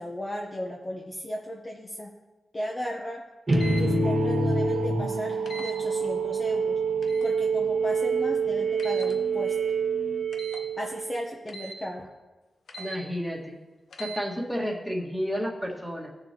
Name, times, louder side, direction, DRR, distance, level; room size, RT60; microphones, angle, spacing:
voice 1, 0.0-2.1 2.5-3.2 3.8-6.8 7.2-9.5 10.8-12.1, equal, 25° left, -1 dB, 0.9 m, -35 dB
sound 1, 3.5-3.8 5.5-5.7 7.0-7.3 8.8-9.1 10.3-10.6 11.5-11.8 12.7-13.0 13.9-14.2, right 1 dB, 70° left, 0.9 m, -40 dB
sound 2, 3.5-11.4, right 3 dB, 35° right, 1.5 m, -26 dB
sound 3, 4.0-9.5, right 7 dB, 85° right, 1.7 m, -45 dB
voice 2, 12.8-13.6 14.0-16.1, equal, ahead, -1 dB, 1.8 m, -31 dB
18.0 x 6.8 x 2.9 m, 1.2 s
wide cardioid pair, 100°, 0 cm